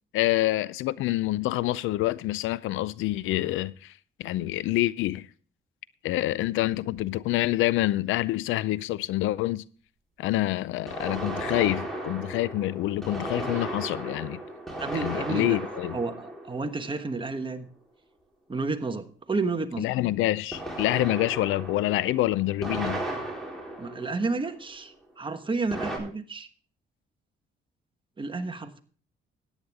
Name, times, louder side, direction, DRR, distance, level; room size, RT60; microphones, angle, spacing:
voice 1, 0.1-3.9 4.2-5.3 6.0-9.6 10.2-14.4 14.9-16.0 19.8-23.0, left 16 dB, 90° left, 0.5 m, -27 dB
sound 1, 6.9-7.0 10.9-17.4 20.5-24.7 25.7-26.0, right 1 dB, ahead, 4.1 m, -35 dB
voice 2, 14.8-15.6 15.9-17.7 18.5-19.9 23.8-26.5 28.2-28.8, right 3 dB, 25° right, 1.3 m, -31 dB
14.0 x 9.8 x 3.5 m
cardioid pair, 90°, 20 cm